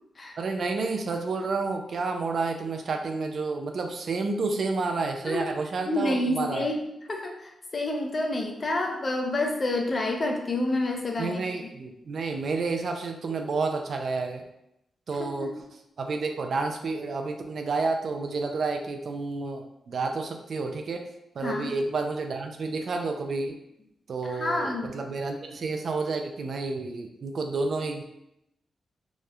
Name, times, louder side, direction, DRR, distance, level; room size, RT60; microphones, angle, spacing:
voice 1, 0.4-6.7 11.2-14.4 15.1-15.5 16.0-21.1 21.4-23.6 24.1-28.0, right 3 dB, 65° right, 5 dB, 0.3 m, -30 dB
voice 2, 5.9-6.8 7.1-11.4 15.2-15.5 21.4-21.7 24.3-24.9, left 2 dB, 45° left, 2 dB, 0.5 m, -28 dB
2.9 x 2.0 x 2.3 m, 0.82 s
cardioid pair, 60°, 0 cm